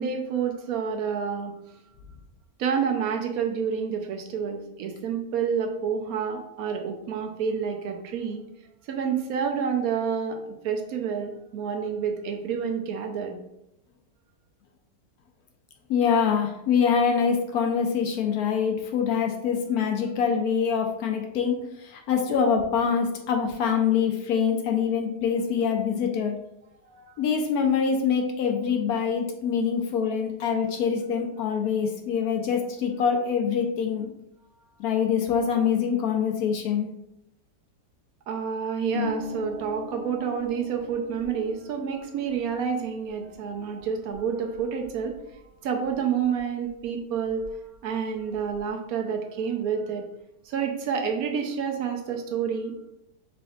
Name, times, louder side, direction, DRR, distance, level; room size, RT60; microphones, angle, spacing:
voice 1, 0.0-1.5 2.6-8.4 8.9-13.4 26.9-27.2 38.3-45.2 45.6-47.5 47.8-50.0 50.5-52.9, right 6 dB, 70° right, 2 dB, 0.9 m, -29 dB
voice 2, 15.9-26.4 27.2-34.1 34.8-36.9, left 6 dB, 70° left, 2 dB, 1.0 m, -25 dB
Harp, 38.9-46.4 46.7-47.8 48.0-48.7, left 4 dB, 45° left, 0.9 m, -41 dB
5.0 x 3.3 x 2.3 m, 0.82 s
omnidirectional pair, 1.9 m